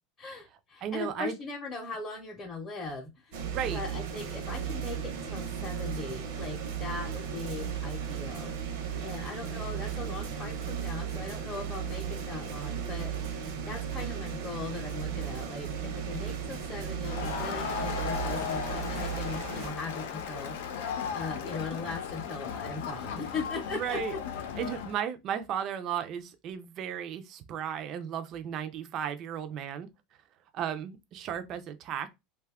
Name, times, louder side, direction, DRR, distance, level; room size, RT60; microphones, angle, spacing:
voice 1, 0.2-3.4 3.7-13.1 13.4-24.2, left 3 dB, 25° left, 0.7 m, -39 dB
voice 2, 0.8-1.3 3.5-3.8 23.7-24.1 24.6-29.9 30.5-32.1, right 9 dB, 40° right, 0.4 m, -34 dB
sound 1, 3.3-19.7, right 8 dB, 75° right, 0.8 m, -35 dB
Crowd, 17.0-25.0, left 7 dB, 90° left, 0.6 m, -36 dB
2.6 x 2.2 x 3.5 m
supercardioid pair, 155°, 0 cm